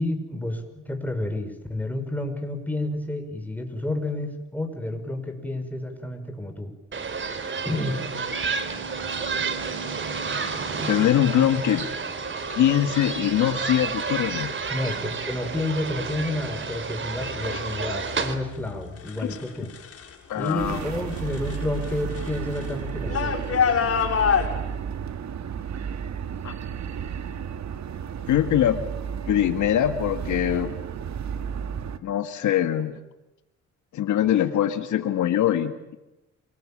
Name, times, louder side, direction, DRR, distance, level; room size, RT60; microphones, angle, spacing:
voice 1, 0.0-6.7 7.6-8.0 14.7-19.7 20.3-23.4, left 1 dB, 5° left, 5 dB, 5.8 m, -30 dB
sound 1, 6.9-18.4, right 5 dB, 40° right, 3.4 m, -30 dB
voice 2, 10.9-11.9 12.5-14.5 19.2-19.4 20.3-20.8 26.4-26.5 28.3-28.8 29.3-30.7 32.0-32.9 33.9-36.0, left 11 dB, 75° left, 8 dB, 1.9 m, -23 dB
sound 2, 11.2-11.9 13.1-13.4 14.0-14.4 15.0-15.5 15.8-20.1 20.4-24.5, left 7 dB, 50° left, 6.7 m, -29 dB
sound 3, 20.6-32.0, right 7 dB, 65° right, 2.0 m, -33 dB
27.5 x 20.5 x 8.8 m, 0.96 s
cardioid pair, 90°, 30 cm